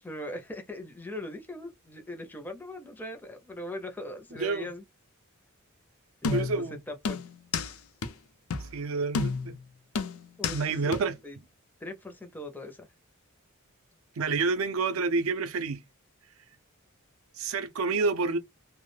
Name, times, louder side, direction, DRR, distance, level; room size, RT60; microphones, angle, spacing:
voice 1, 0.0-4.8 6.2-7.2 10.4-10.6 11.2-11.4 11.8-12.9, left 1 dB, 10° left, 0.4 m, -40 dB
voice 2, 4.3-4.7 6.3-6.8 8.6-9.6 10.5-11.2 14.2-15.8 17.4-18.4, right 4 dB, 75° right, 0.5 m, -28 dB
sound 1, 6.2-6.7 7.1-7.7 8.0-8.1 8.5-8.7 9.1-9.6 10.0-10.6 10.9-11.0, left 4 dB, 80° left, 0.4 m, -30 dB
2.2 x 2.0 x 3.0 m
head